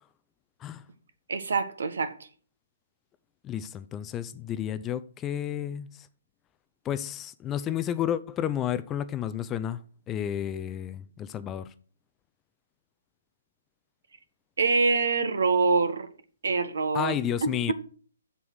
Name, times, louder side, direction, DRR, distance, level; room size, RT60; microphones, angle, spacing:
voice 1, 1.3-2.1 14.6-16.1 16.4-17.1 17.4-17.7, right 4 dB, 65° right, 1.5 m, -25 dB
voice 2, 3.4-5.9 6.8-9.8 10.1-11.6 16.9-17.7, left 10 dB, 20° left, 0.5 m, -31 dB
7.8 x 6.9 x 7.9 m
figure-of-eight pair, 135°, 0 cm